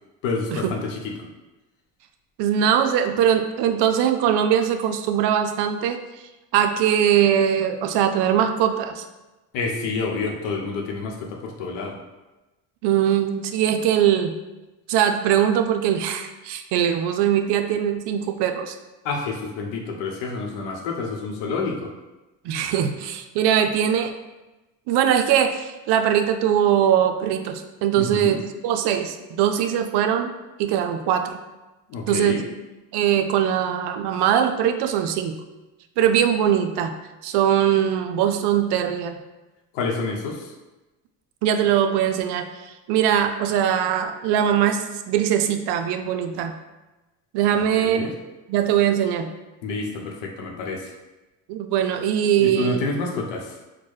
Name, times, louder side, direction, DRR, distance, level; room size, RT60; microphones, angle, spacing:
voice 1, 0.2-1.1 9.5-12.0 19.0-21.9 28.0-28.4 31.9-32.4 39.7-40.5 47.5-48.1 49.6-50.9 52.4-53.5, left 4 dB, 75° left, 1 dB, 0.8 m, -28 dB
voice 2, 2.4-6.0 6.5-9.0 12.8-14.3 14.9-18.7 22.4-24.1 24.9-28.4 28.6-30.3 30.6-31.4 32.1-32.4 32.9-35.4 36.0-36.9 37.2-39.2 41.4-46.5 47.3-48.1 48.5-49.3 51.5-52.8, right 9 dB, 65° right, 6 dB, 0.5 m, -21 dB
4.4 x 2.2 x 3.1 m, 1.1 s
supercardioid pair, 80°, 44 cm